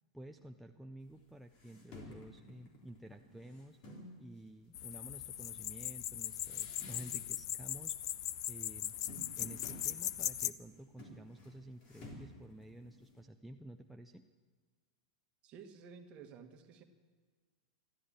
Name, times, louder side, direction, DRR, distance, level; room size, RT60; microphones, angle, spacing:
voice 1, 0.1-3.8 4.2-8.0 8.5-9.0 9.4-14.2, right 1 dB, ahead, 3 dB, 0.5 m, -51 dB
sound 1, 1.1-1.2 1.5-4.2 4.8-7.5 7.7-8.3 8.6-13.2, left 1 dB, 45° left, 3.5 m, -54 dB
sound 2, 4.7-10.5, left 12 dB, 70° left, 0.5 m, -39 dB
voice 2, 15.4-16.8, right 6 dB, 35° right, 6 dB, 1.5 m, -53 dB
13.0 x 12.0 x 8.5 m, 1.5 s
supercardioid pair, 135°, 3 cm